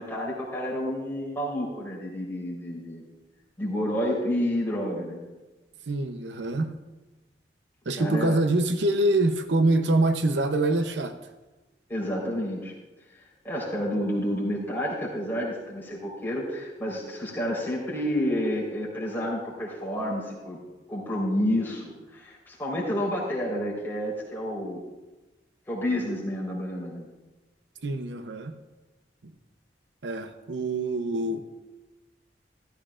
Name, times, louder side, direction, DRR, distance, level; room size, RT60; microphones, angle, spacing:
voice 1, 0.0-3.0 3.6-5.3 8.0-8.3 11.9-12.7 13.4-20.6 20.9-24.8 25.7-27.0, equal, 10° left, -6 dB, 4.1 m, -29 dB
voice 2, 5.9-6.8 7.9-11.1 27.8-28.5 29.2-29.3 30.0-31.4, right 2 dB, 90° right, 8 dB, 0.7 m, -25 dB
15.0 x 14.0 x 2.5 m, 1.1 s
head